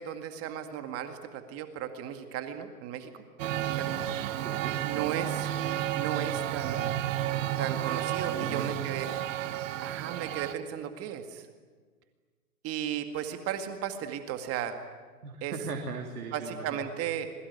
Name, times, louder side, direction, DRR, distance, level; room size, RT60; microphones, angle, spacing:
voice 1, 0.0-3.1 3.6-4.0 4.8-5.5 5.9-7.0 7.6-9.1 9.8-11.5 12.6-14.8 15.4-15.6 16.3-17.3, right 9 dB, 30° right, 8 dB, 2.1 m, -35 dB
Male speech man speaking, 3.4-10.5, right 12 dB, 55° right, 1.6 m, -32 dB
voice 2, 3.9-4.8 8.2-8.7 15.2-16.8, right 4 dB, 75° right, 3 dB, 3.2 m, -39 dB
26.5 x 22.0 x 9.6 m, 1.5 s
hypercardioid pair, 120°, 47 cm